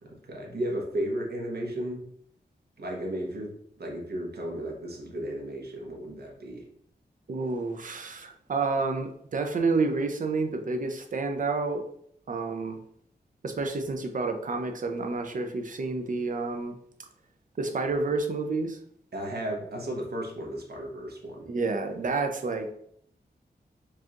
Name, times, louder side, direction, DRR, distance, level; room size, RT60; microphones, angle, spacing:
voice 1, 0.0-2.0 2.8-6.7 19.1-21.5, right 1 dB, 70° right, -1 dB, 1.0 m, -34 dB
voice 2, 7.3-11.8 12.3-12.8 13.4-16.8 17.6-18.8 21.5-22.7, right 3 dB, 50° right, 5 dB, 0.5 m, -29 dB
4.7 x 2.5 x 2.9 m, 0.67 s
wide cardioid pair, 125°, 17 cm